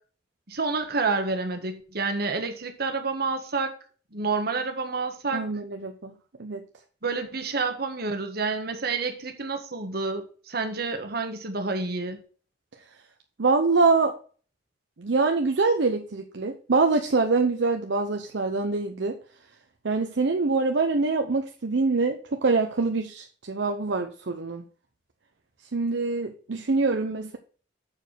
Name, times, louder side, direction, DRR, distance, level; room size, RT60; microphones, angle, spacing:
voice 1, 0.5-3.7 4.1-5.4 7.0-12.2, right 4 dB, 60° right, 6 dB, 1.4 m, -29 dB
voice 2, 5.3-6.1 6.4-6.6 13.4-14.1 15.0-19.2 19.8-24.6 25.7-27.4, right 3 dB, 75° right, 5 dB, 0.7 m, -24 dB
7.0 x 4.5 x 6.3 m, 0.41 s
head